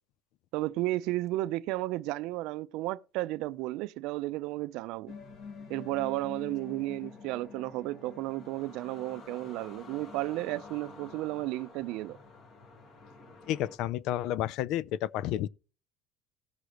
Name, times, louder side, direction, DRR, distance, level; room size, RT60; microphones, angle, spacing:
voice 1, 0.5-5.1 5.7-12.2, right 18 dB, 65° right, 0.5 m, -33 dB
sound 1, 5.1-13.8, left 4 dB, 40° left, 2.0 m, -48 dB
voice 2, 13.5-15.5, left 12 dB, 60° left, 0.4 m, -31 dB
18.0 x 6.5 x 3.0 m
cardioid pair, 165°, 0 cm